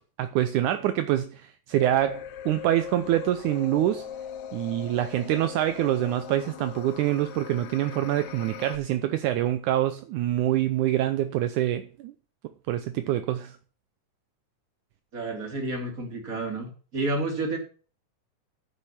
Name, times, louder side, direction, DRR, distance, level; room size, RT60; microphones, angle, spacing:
voice 1, 0.2-4.1 4.5-12.1 12.7-13.6, right 13 dB, 75° right, 2.1 m, -25 dB
sound 1, 1.7-8.8, left 9 dB, 70° left, 2.0 m, -40 dB
voice 2, 15.1-17.6, right 2 dB, 25° right, 3.4 m, -30 dB
10.0 x 8.8 x 6.0 m
omnidirectional pair, 3.7 m